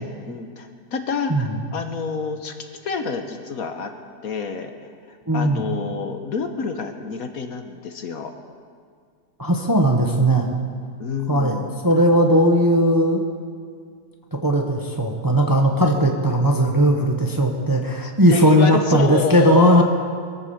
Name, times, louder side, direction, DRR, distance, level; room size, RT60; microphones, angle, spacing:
voice 1, 0.0-2.5 2.8-3.9 4.2-4.7 5.1-8.3 11.0-11.7 18.0-19.8, left 5 dB, 60° left, 6 dB, 1.3 m, -28 dB
voice 2, 5.3-5.6 9.4-10.5 11.3-13.2 14.3-19.8, equal, 15° right, 1 dB, 0.9 m, -18 dB
22.5 x 8.3 x 7.1 m, 2.1 s
omnidirectional pair, 1.8 m